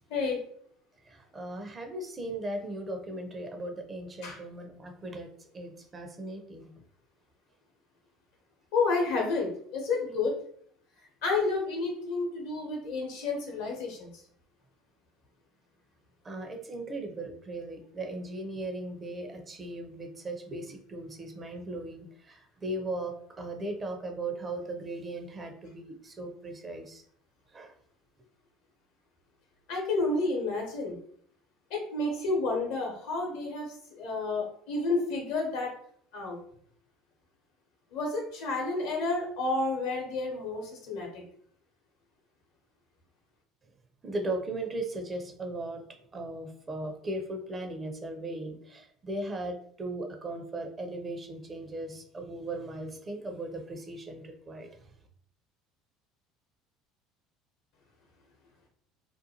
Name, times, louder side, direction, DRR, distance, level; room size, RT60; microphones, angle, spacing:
voice 1, 1.0-6.7 16.2-27.0 27.5-27.7 44.0-45.8 46.1-54.9, right 2 dB, 30° right, 4 dB, 0.6 m, -37 dB
voice 2, 8.7-10.4 11.2-14.2 29.7-31.0 31.7-35.7 36.1-36.4 37.9-41.2, left 3 dB, 65° left, 0 dB, 0.8 m, -30 dB
2.5 x 2.2 x 2.8 m, 0.62 s
hypercardioid pair, 65°, 0 cm